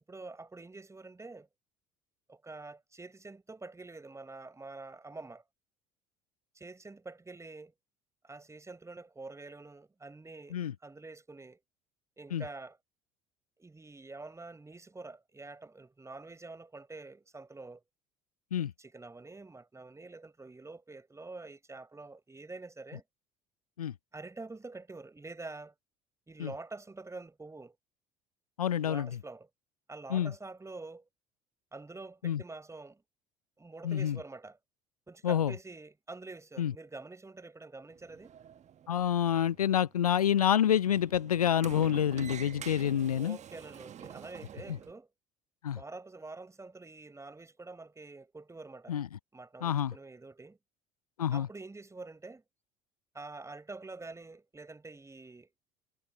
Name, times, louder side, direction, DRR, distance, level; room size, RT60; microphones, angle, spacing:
voice 1, 0.1-1.5 2.3-5.4 6.5-7.7 8.2-11.6 12.2-12.8 13.6-17.8 18.6-23.0 24.1-25.7 26.3-27.7 28.8-29.5 29.9-31.0 31.7-33.0 33.6-34.6 35.1-38.3 43.1-45.1 45.7-49.0 49.3-50.6 51.3-52.4 53.1-55.5, right 3 dB, 15° right, 6.8 m, -47 dB
voice 2, 28.6-29.2 30.1-30.3 32.2-32.4 33.8-34.2 35.2-35.5 36.6-36.7 38.9-43.4 45.6-45.8 48.9-49.1 49.6-49.9 51.2-51.5, left 9 dB, 85° left, 0.7 m, -28 dB
Sliding door, 37.9-44.9, right 9 dB, 40° right, 1.3 m, -48 dB
figure-of-eight pair, 65°, 18 cm